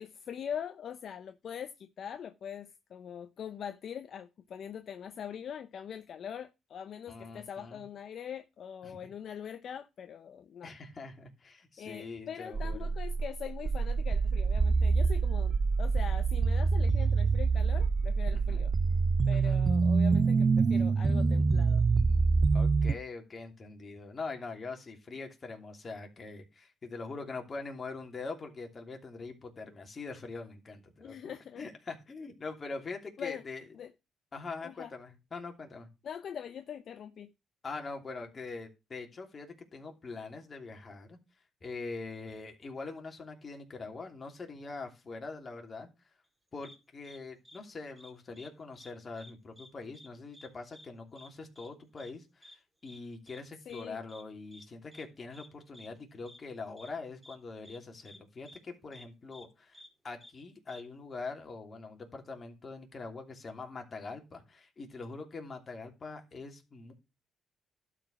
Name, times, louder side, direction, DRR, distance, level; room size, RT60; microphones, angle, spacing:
voice 1, 0.0-10.7 11.8-18.7 19.3-21.8 31.0-31.7 33.2-33.4 33.7-33.9 34.6-34.9 36.0-37.3 53.7-54.0, left 8 dB, 60° left, 0.7 m, -42 dB
voice 2, 7.1-7.8 8.8-9.0 10.6-12.9 18.3-18.6 19.3-19.6 22.5-33.6 34.3-35.9 37.6-41.2 41.6-45.9 46.5-66.9, left 3 dB, 35° left, 3.0 m, -43 dB
sound 1, 12.5-22.9, right 4 dB, 35° right, 0.6 m, -26 dB
sound 2, 46.6-46.8 47.0-47.2 47.4-47.6 48.0-48.5 48.8-48.9 49.2-49.7 49.9-50.1 50.3-50.5 50.7-50.9 51.2-51.3 51.6-51.7 52.0-52.1 52.4-52.5 52.9-53.0 53.3-53.4 53.7-53.8 54.1-54.2 54.5-54.6 54.9-55.0 55.3-55.5 55.7-55.9 56.3-56.4 56.8-56.9 57.2-57.4 57.6-57.8 58.0-58.2 58.5-58.6 58.9-59.0 59.3-59.4 59.7-59.9 60.2-60.3 60.7-60.8, equal, 10° right, 2.6 m, -53 dB
12.0 x 5.1 x 5.9 m
cardioid pair, 90°, 0 cm